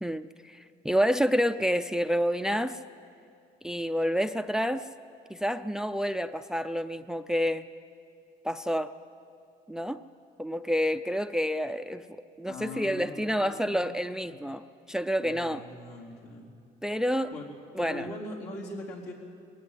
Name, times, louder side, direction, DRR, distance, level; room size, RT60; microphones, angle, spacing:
voice 1, 0.0-2.8 3.6-4.9 5.3-7.6 8.4-8.9 9.7-10.0 10.4-12.0 12.4-15.6 16.8-17.3 17.7-18.1, equal, 5° right, 11 dB, 0.4 m, -28 dB
voice 2, 12.5-13.9 15.2-16.5 17.0-17.5 17.8-19.1, left 2 dB, 75° left, -3 dB, 4.3 m, -41 dB
21.5 x 17.5 x 8.4 m, 2.5 s
cardioid pair, 110°, 17 cm